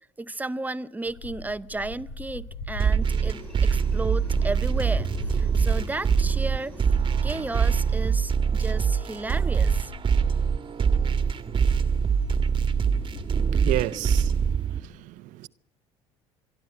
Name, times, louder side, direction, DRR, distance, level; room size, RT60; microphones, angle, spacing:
voice 1, 0.2-6.7 7.2-9.9, right 2 dB, 10° right, 0.8 m, -33 dB
sound 1, 1.1-13.4, left 2 dB, 70° left, 4.0 m, -41 dB
sound 2, 2.8-14.8, right 6 dB, 35° right, 1.5 m, -24 dB
Aircraft, 3.0-8.1, left 2 dB, 10° left, 6.5 m, -47 dB
voice 2, 13.3-14.4 14.7-15.5, right 16 dB, 70° right, 0.8 m, -32 dB
25.5 x 12.0 x 9.2 m
supercardioid pair, 80°, 14 cm